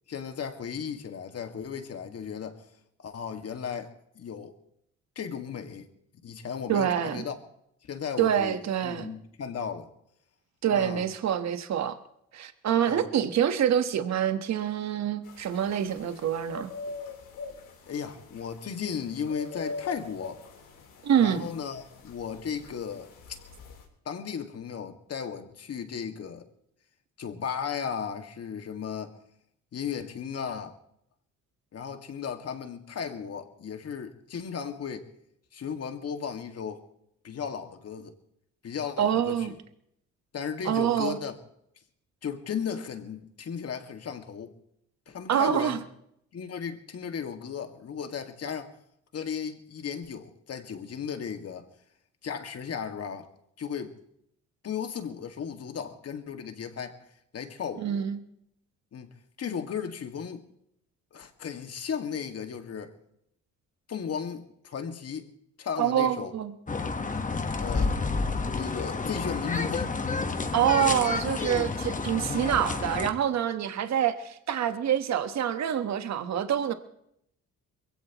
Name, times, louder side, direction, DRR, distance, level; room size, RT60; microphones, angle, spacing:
voice 1, 0.1-2.6 3.0-4.5 5.2-5.9 6.2-7.4 7.8-8.6 8.8-9.9 10.7-11.1 12.9-13.1 17.9-20.4 21.2-23.4 24.1-26.4 27.2-29.2 29.7-30.8 31.7-35.1 35.5-36.8 37.2-38.1 38.6-39.6 40.3-41.4 42.2-44.5 45.1-45.8 46.3-48.7 49.1-51.7 52.2-53.3 53.6-53.9 54.6-58.1 58.9-60.4 61.1-62.9 63.9-65.2 65.6-66.3 67.6-68.0 68.5-69.9, left 7 dB, 55° left, 2.0 m, -35 dB
voice 2, 6.7-7.2 8.2-9.1 10.6-12.0 12.3-16.7 21.0-21.5 39.0-39.5 40.6-41.2 45.3-45.8 57.8-58.2 65.8-66.5 70.5-76.7, right 9 dB, 65° right, 1.3 m, -26 dB
sound 1, 15.2-23.8, left 3 dB, 85° left, 3.9 m, -43 dB
sound 2, 66.7-73.1, left 4 dB, 25° left, 1.3 m, -30 dB
22.5 x 16.5 x 3.0 m
cardioid pair, 90°, 30 cm